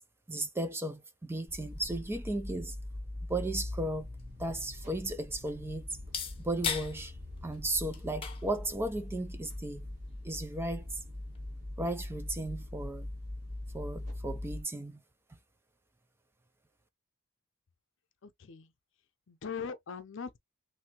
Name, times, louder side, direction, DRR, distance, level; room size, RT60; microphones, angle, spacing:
voice 1, 0.3-2.8 3.3-4.1 4.4-5.9 6.4-7.1 7.4-9.9 10.2-11.0 11.8-13.1 13.7-15.0, right 1 dB, 10° right, 0.4 m, -35 dB
sound 1, 1.5-14.6, left 1 dB, 45° right, 2.0 m, -42 dB
sound 2, 3.6-11.6, left 6 dB, 25° left, 0.7 m, -43 dB
voice 2, 18.2-18.7 19.3-20.4, left 6 dB, 65° left, 0.6 m, -40 dB
3.3 x 2.6 x 2.9 m
head